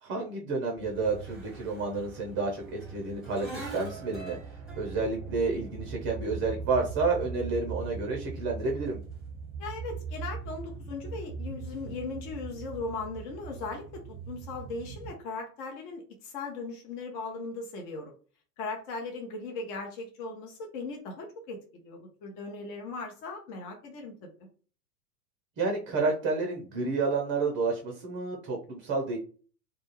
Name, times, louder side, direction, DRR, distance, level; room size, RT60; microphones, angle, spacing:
voice 1, 0.0-2.6 2.9-4.4 4.7-9.0 25.6-29.2, right 3 dB, 25° right, 1 dB, 0.6 m, -30 dB
sound 1, 0.8-15.1, right 5 dB, ahead, 0.9 m, -40 dB
voice 2, 9.6-18.1 18.6-24.3, left 3 dB, 40° left, 2 dB, 0.8 m, -38 dB
2.3 x 2.3 x 3.0 m, 0.40 s
hypercardioid pair, 95°, 48 cm